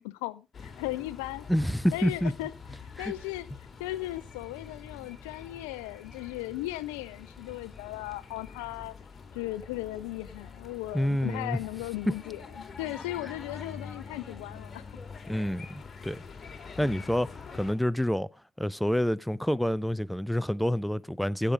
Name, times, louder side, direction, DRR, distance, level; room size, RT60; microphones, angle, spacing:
voice 1, 0.0-1.5 1.9-2.5 3.0-3.5 3.8-8.9 9.3-15.0, left 17 dB, 80° left, 0.6 m, -37 dB
sound 1, 0.5-17.7, left 5 dB, 40° left, 3.6 m, -46 dB
voice 2, 1.5-2.3 3.0-3.1 10.9-11.6 12.1-12.2 15.3-16.2 16.8-18.3 18.6-21.5, equal, 5° left, 0.6 m, -28 dB
15.5 x 6.8 x 5.0 m
hypercardioid pair, 50°, 0 cm